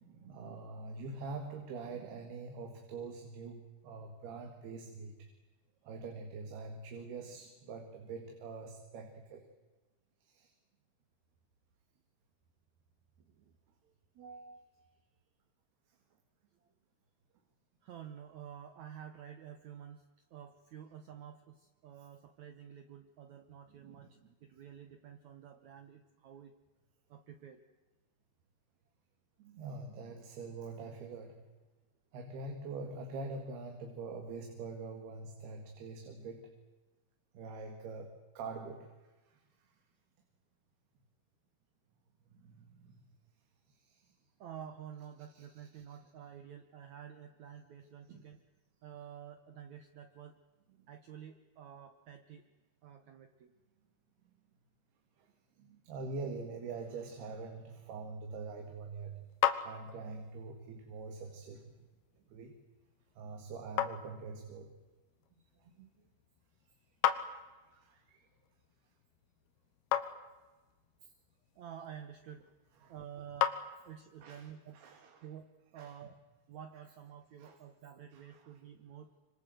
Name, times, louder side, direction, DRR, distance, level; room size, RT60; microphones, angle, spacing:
voice 1, 0.0-5.3 5.9-9.5 10.2-10.5 23.8-24.1 29.4-31.5 32.1-36.5 37.3-39.8 42.3-43.1 43.7-44.1 45.3-46.0 48.1-48.2 50.8-50.9 55.2-55.3 55.6-59.3 59.6-61.7 62.3-62.6 63.2-64.7 65.6-65.9 67.7-68.3 71.0-71.1 72.8-72.9 74.2-74.5 74.7-75.3 75.8-75.9 77.4-77.6 78.1-78.5, right 4 dB, 85° right, 4 dB, 4.1 m, -45 dB
voice 2, 13.2-13.5 13.8-15.0 16.6-16.7 17.8-20.0 20.3-26.6 27.1-27.6 44.4-48.4 48.8-50.4 50.9-52.5 52.8-53.5 62.1-62.4 71.6-72.5 72.9-76.2 76.5-79.1, right 9 dB, 60° right, 7 dB, 2.1 m, -50 dB
sound 1, 58.5-74.3, left 11 dB, 90° left, 3.2 m, -40 dB
26.0 x 25.5 x 7.9 m, 1.2 s
omnidirectional pair, 4.4 m